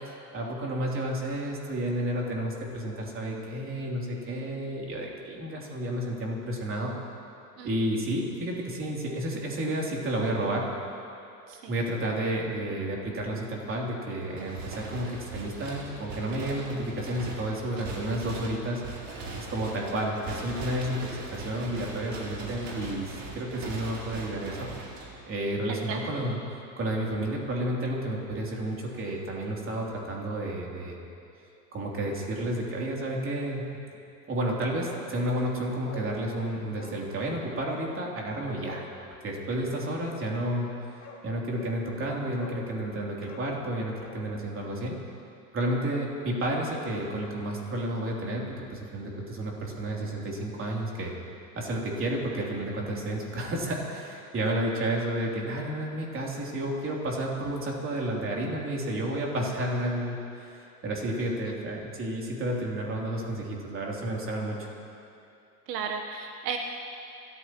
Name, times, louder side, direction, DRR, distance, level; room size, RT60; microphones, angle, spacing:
voice 1, 0.3-6.9 7.6-10.7 11.6-18.8 19.4-24.7 25.3-31.0 31.7-33.6 34.3-38.9 39.2-45.0 45.5-51.1 51.5-64.7, right 1 dB, 25° right, -2 dB, 3.2 m, -31 dB
sound 1, 14.3-25.5, right 3 dB, 45° right, 4.0 m, -40 dB
voice 2, 25.7-26.1 61.2-61.5 65.7-66.6, right 6 dB, 75° right, 3 dB, 1.3 m, -35 dB
Bark, 34.8-35.1 35.4-35.5 35.8-36.1 36.7-37.0 37.6-37.9 38.6-38.9 40.5-40.6 41.0-41.2 41.5-41.8 42.3-42.6 43.2-44.2 44.5-44.6, left 3 dB, 30° left, 4.2 m, -45 dB
28.0 x 13.5 x 3.1 m, 2.7 s
supercardioid pair, 120°, 49 cm